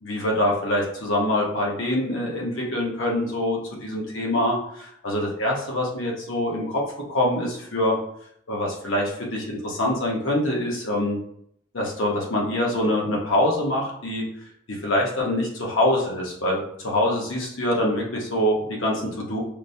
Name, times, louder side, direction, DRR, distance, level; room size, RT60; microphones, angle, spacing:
voice 1, 0.0-6.8 7.1-8.0 8.5-11.2 11.7-14.2 14.7-19.4, left 1 dB, 85° left, -2 dB, 0.9 m, -24 dB
5.0 x 2.1 x 2.6 m, 0.70 s
head